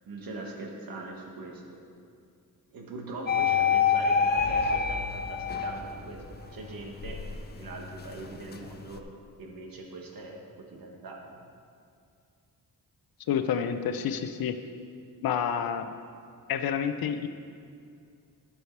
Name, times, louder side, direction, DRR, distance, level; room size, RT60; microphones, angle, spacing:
voice 1, 0.1-1.8 2.7-7.2 7.5-9.0 9.4-10.4 10.7-11.3, right 2 dB, 65° right, 1 dB, 1.4 m, -41 dB
sound 1, 3.3-6.1 6.6-9.0, left 6 dB, 30° left, 0.4 m, -27 dB
sound 2, 4.0-6.8, left 2 dB, 5° left, 2.2 m, -44 dB
voice 2, 13.3-14.6 15.2-15.9 16.5-17.3, left 8 dB, 70° left, 9 dB, 0.6 m, -29 dB
11.5 x 6.4 x 4.6 m, 2.4 s
wide cardioid pair, 175°, 37 cm